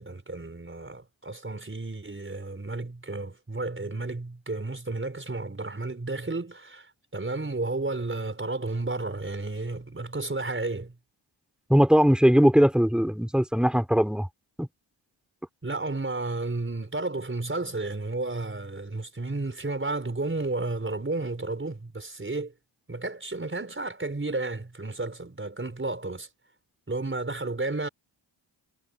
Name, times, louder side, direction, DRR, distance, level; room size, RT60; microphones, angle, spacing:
voice 1, 0.0-10.9 15.6-22.5 22.9-26.3 26.9-27.9, right 2 dB, 25° right, 5.1 m, -32 dB
voice 2, 11.7-14.3 14.6-14.7, equal, ahead, 3.7 m, -20 dB
cardioid pair, 60°, 46 cm